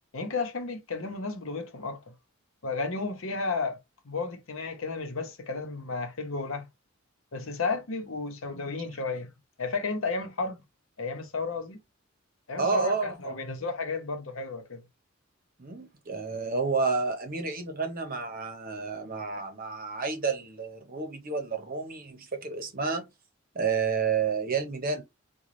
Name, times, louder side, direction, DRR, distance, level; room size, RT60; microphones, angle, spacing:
voice 1, 0.1-2.0 2.6-3.8 4.0-6.7 7.3-9.3 9.6-10.6 11.0-11.8 12.5-14.8, left 3 dB, 75° left, 0.8 m, -32 dB
voice 2, 12.6-13.4 15.6-23.1 23.5-25.0, right 5 dB, 45° right, 0.9 m, -30 dB
3.8 x 2.3 x 3.1 m
head